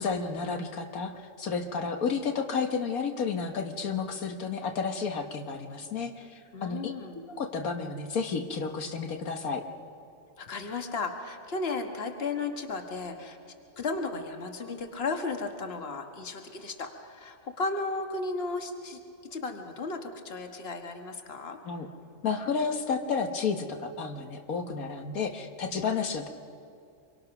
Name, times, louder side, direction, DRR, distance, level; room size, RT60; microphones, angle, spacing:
voice 1, 0.0-9.6 21.7-21.9 22.2-26.3, left 5 dB, 90° left, 5 dB, 1.7 m, -31 dB
voice 2, 6.5-7.2 10.4-13.4 13.8-21.6, left 3 dB, 45° left, 4 dB, 1.7 m, -34 dB
26.0 x 23.5 x 5.9 m, 2.4 s
omnidirectional pair, 1.5 m